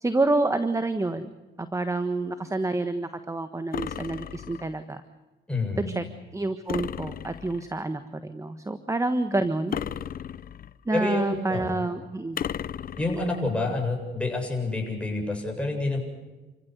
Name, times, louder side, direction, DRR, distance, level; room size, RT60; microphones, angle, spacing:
voice 1, 0.0-1.3 1.6-5.0 5.9-6.0 6.3-9.8 10.8-12.4, right 2 dB, 15° right, 10 dB, 1.4 m, -28 dB
sound 1, 3.7-4.8 6.7-7.7 9.7-10.8 12.4-13.4, left 9 dB, 45° left, 0.7 m, -35 dB
voice 2, 5.5-5.9 10.9-11.8 13.0-16.0, left 2 dB, 5° left, 0 dB, 8.0 m, -28 dB
29.0 x 16.0 x 8.2 m, 1.2 s
cardioid pair, 90°, 20 cm